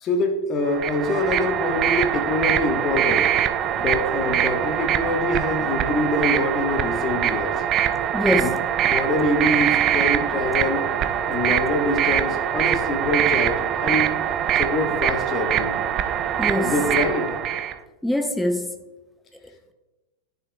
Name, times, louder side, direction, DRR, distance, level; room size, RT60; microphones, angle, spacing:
voice 1, 0.0-3.3 3.8-7.5 8.4-8.5 8.8-10.8 11.2-14.2 14.5-15.8 16.6-17.4, left 2 dB, 30° left, 3 dB, 1.3 m, -25 dB
sound 1, 0.7-17.7, right 10 dB, 35° right, 0.4 m, -23 dB
voice 2, 8.1-8.6 16.4-16.7 18.0-18.7, left 1 dB, 5° left, 6 dB, 0.8 m, -23 dB
11.0 x 6.6 x 2.3 m, 1.1 s
figure-of-eight pair, 90°, 0 cm